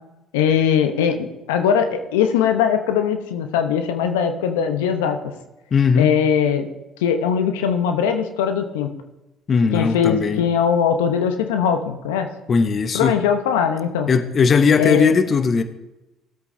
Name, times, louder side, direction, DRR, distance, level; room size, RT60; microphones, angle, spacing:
voice 1, 0.3-5.2 6.0-6.7 7.0-8.9 9.7-12.3 12.9-14.1 14.8-15.1, left 7 dB, 80° left, 0.8 m, -20 dB
voice 2, 5.7-6.1 9.5-10.4 12.5-13.2 14.1-15.6, left 5 dB, 45° left, 0.8 m, -18 dB
16.5 x 8.2 x 2.7 m
hypercardioid pair, 60°, 0 cm